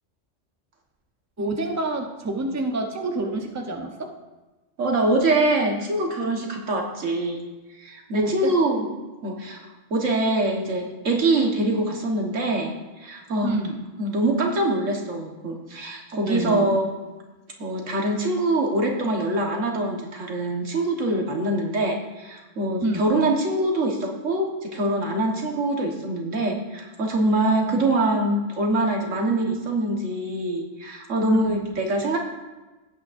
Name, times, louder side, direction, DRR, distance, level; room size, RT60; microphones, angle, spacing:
voice 1, 1.4-4.1 8.1-8.5 13.4-13.8 16.1-16.8 22.8-23.0 27.7-27.9 31.3-31.6, right 2 dB, 15° right, 3 dB, 0.8 m, -28 dB
voice 2, 4.8-7.4 7.8-8.9 9.2-12.8 13.0-13.5 14.0-16.9 17.6-32.2, right 2 dB, 85° right, 1 dB, 1.8 m, -24 dB
16.5 x 8.7 x 2.6 m, 1.2 s
omnidirectional pair, 1.3 m